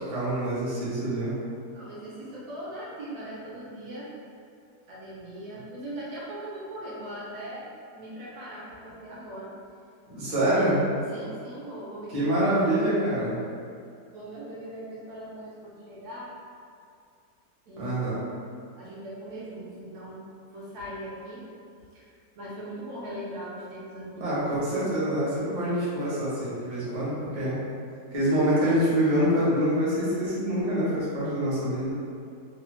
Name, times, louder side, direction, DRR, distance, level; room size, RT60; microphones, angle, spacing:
voice 1, 0.0-1.3 10.1-10.8 12.1-13.3 17.8-18.2 24.2-27.6 28.1-31.9, right 1 dB, 35° right, -10 dB, 0.5 m, -25 dB
voice 2, 1.7-4.1 4.9-9.5 11.1-12.3 14.1-16.3 17.7-17.9 18.8-20.2 20.5-21.5 21.9-24.3, right 1 dB, 70° right, -7 dB, 1.0 m, -40 dB
3.2 x 2.0 x 3.0 m, 2.3 s
omnidirectional pair, 1.8 m